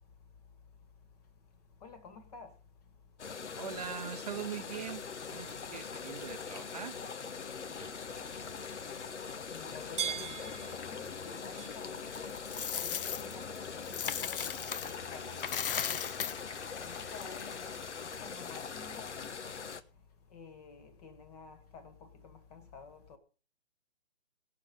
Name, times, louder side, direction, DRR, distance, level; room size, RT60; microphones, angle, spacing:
voice 1, 1.8-2.5 9.5-12.2 12.8-13.3 13.8-14.5 14.8-16.3 16.8-17.6 18.0-19.5 20.3-21.9 22.2-23.2, left 5 dB, 35° left, 1.9 m, -51 dB
sound 1, 3.2-19.8, left 6 dB, 75° left, 1.1 m, -42 dB
voice 2, 3.5-7.0 7.8-8.2, right 8 dB, 35° right, 0.7 m, -42 dB
sound 2, 3.9-13.6, right 8 dB, 80° right, 0.6 m, -47 dB
Coin (dropping), 12.1-15.0 15.3-17.6, left 8 dB, 50° left, 0.7 m, -37 dB
18.0 x 6.6 x 5.3 m
hypercardioid pair, 145°, 35 cm